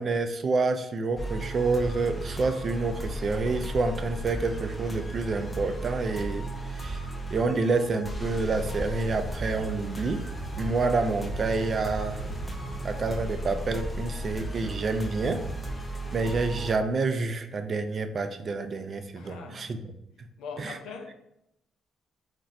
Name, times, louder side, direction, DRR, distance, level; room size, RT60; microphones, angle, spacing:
voice 1, 0.0-10.3 10.6-12.3 12.8-15.5 16.1-19.8 20.6-20.8, right 3 dB, 45° right, 0.3 m, -28 dB
sound 1, 1.2-16.7, right 1 dB, 15° left, 0.4 m, -35 dB
sound 2, 4.5-15.6, right 1 dB, 85° right, 0.8 m, -45 dB
voice 2, 19.1-19.7 20.4-21.1, left 5 dB, 85° left, 0.4 m, -41 dB
2.5 x 2.1 x 3.9 m
cardioid pair, 90°, 0 cm